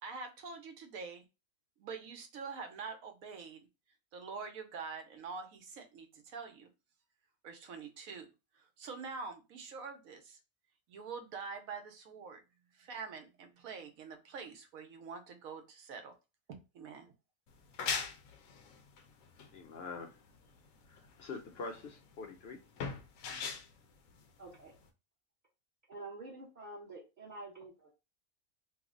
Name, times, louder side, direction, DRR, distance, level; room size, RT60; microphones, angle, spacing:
voice 1, 0.0-1.2 1.8-3.7 4.1-6.7 7.4-8.3 8.5-10.4 10.9-12.4 12.7-16.1 16.5-17.1, right 5 dB, 85° right, 1.1 m, -45 dB
sound 1, 17.5-24.9, left 6 dB, 80° left, 1.1 m, -41 dB
voice 2, 19.5-20.1 21.2-22.6, left 3 dB, 60° left, 0.7 m, -44 dB
voice 3, 24.4-24.7 25.9-27.9, right 2 dB, 40° right, 1.0 m, -48 dB
3.2 x 2.1 x 3.6 m
omnidirectional pair, 1.4 m